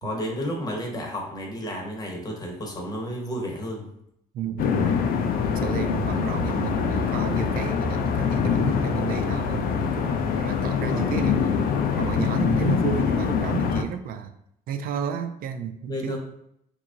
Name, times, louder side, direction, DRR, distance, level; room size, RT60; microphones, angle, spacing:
voice 1, 0.0-3.9 10.8-11.1 12.6-12.9 15.9-16.2, equal, 20° left, 0 dB, 0.9 m, -32 dB
voice 2, 4.3-5.0 5.5-11.6 12.0-14.3 14.7-16.2, right 8 dB, 60° right, 8 dB, 0.4 m, -32 dB
sound 1, 4.6-13.8, left 6 dB, 60° left, 0.4 m, -24 dB
3.0 x 2.3 x 3.7 m, 0.74 s
cardioid pair, 110°, 17 cm